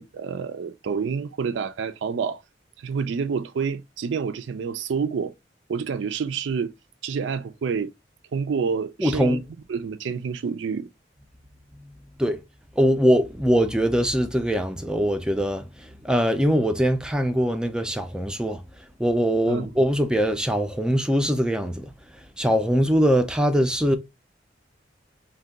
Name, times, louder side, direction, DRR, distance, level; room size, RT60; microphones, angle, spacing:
voice 1, 0.0-2.4 2.8-5.3 5.7-6.7 7.0-7.9 8.3-9.4 9.7-10.9 19.5-19.7, right 6 dB, 70° right, 0.4 m, -28 dB
voice 2, 9.0-9.4 12.2-12.4 12.8-18.6 19.0-21.9 22.4-24.0, equal, 5° right, 0.4 m, -22 dB
2.6 x 2.2 x 3.5 m
head